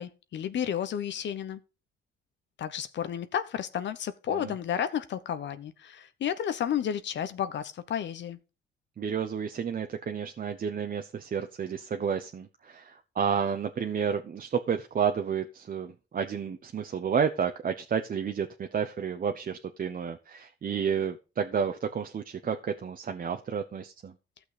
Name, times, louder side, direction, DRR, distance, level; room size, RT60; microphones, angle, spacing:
voice 1, 0.0-1.6 2.6-8.4, left 9 dB, 65° left, 1.0 m, -32 dB
voice 2, 9.0-24.1, right 7 dB, 45° right, 1.0 m, -31 dB
14.0 x 6.2 x 5.0 m
cardioid pair, 90°, 20 cm